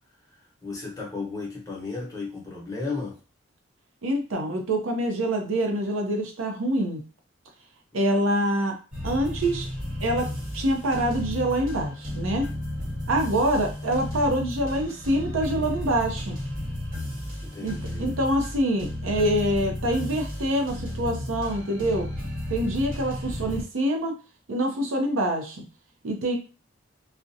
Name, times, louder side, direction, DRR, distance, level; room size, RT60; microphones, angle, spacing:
voice 1, 0.6-3.1 17.5-18.2, left 3 dB, 15° left, -3 dB, 0.8 m, -34 dB
voice 2, 4.0-7.0 7.9-8.8 9.0-9.7 10.0-12.5 13.1-16.4 17.6-17.7 18.0-22.1 22.5-24.1 24.5-25.6 26.0-26.4, right 1 dB, 85° right, 4 dB, 0.6 m, -25 dB
sound 1, 8.9-23.6, left 1 dB, 40° right, 1.0 m, -33 dB
2.4 x 2.1 x 2.6 m, 0.33 s
head